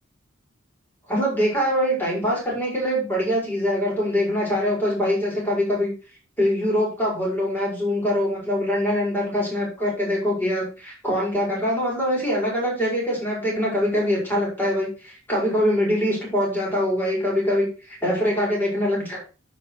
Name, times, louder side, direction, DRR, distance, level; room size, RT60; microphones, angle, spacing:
voice 1, 1.1-5.9 6.4-19.2, equal, 10° left, -4 dB, 5.5 m, -23 dB
10.0 x 6.1 x 4.7 m, 0.34 s
head